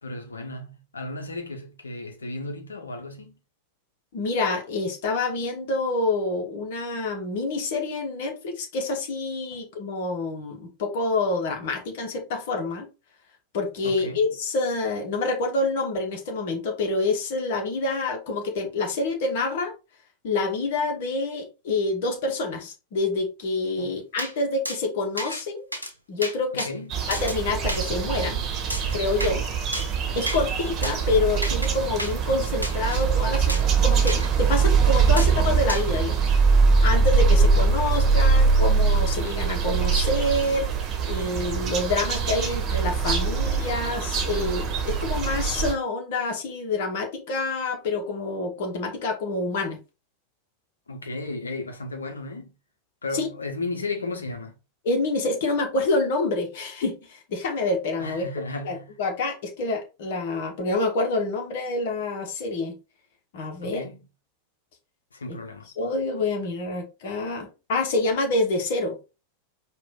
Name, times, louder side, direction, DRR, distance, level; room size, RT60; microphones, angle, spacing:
voice 1, 0.0-3.3 13.8-14.2 23.8-23.9 26.5-27.0 50.9-52.5 53.0-54.5 58.0-59.0 63.6-64.0 65.1-65.7, left 2 dB, 75° left, 0.9 m, -34 dB
voice 2, 4.1-12.9 13.5-19.7 20.2-25.6 26.1-26.7 27.1-28.5 28.9-29.4 30.2-36.3 36.8-40.7 41.1-49.8 53.1-53.3 54.8-58.2 58.6-62.8 63.3-63.8 65.3-65.4 65.8-69.0, left 3 dB, 50° left, 1.2 m, -27 dB
sound 1, 24.2-24.3 24.6-24.8 25.2-25.4 25.7-25.9 26.2-26.7 27.1-27.4 27.7-27.8 28.7-29.3 29.7-29.9 30.3-30.4 30.8-30.9 31.4-31.7 32.0-32.1 32.6-33.0 33.5-33.7 34.1-34.3 35.2-35.3 35.7-35.8, equal, 90° right, 0.8 m, -31 dB
sound 2, 26.9-45.7, right 5 dB, 30° right, 1.2 m, -22 dB
4.9 x 2.5 x 3.7 m
figure-of-eight pair, 90°, 0 cm